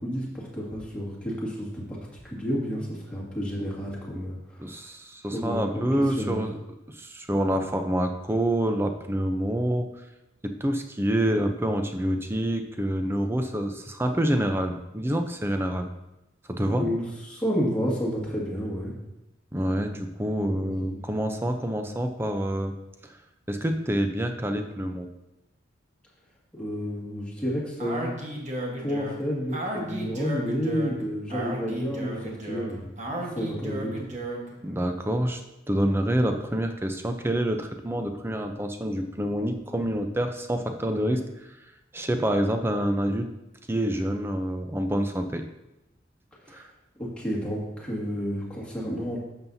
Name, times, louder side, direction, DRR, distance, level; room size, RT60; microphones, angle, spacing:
voice 1, 0.0-1.8 2.2-4.7 5.3-6.4 16.6-18.9 20.5-21.0 26.5-28.1 28.8-33.9 46.4-46.6 47.0-49.2, equal, 5° left, -6 dB, 2.1 m, -31 dB
voice 2, 4.6-6.6 6.9-9.9 10.4-15.9 16.5-16.9 19.5-22.7 23.0-23.2 23.5-25.1 34.6-35.4 35.7-41.2 41.9-43.3 43.7-45.4 46.5-46.7, right 1 dB, 10° right, 6 dB, 0.6 m, -27 dB
Speech, 27.8-34.5, right 1 dB, 40° right, 1.3 m, -34 dB
11.5 x 7.2 x 2.7 m, 0.95 s
head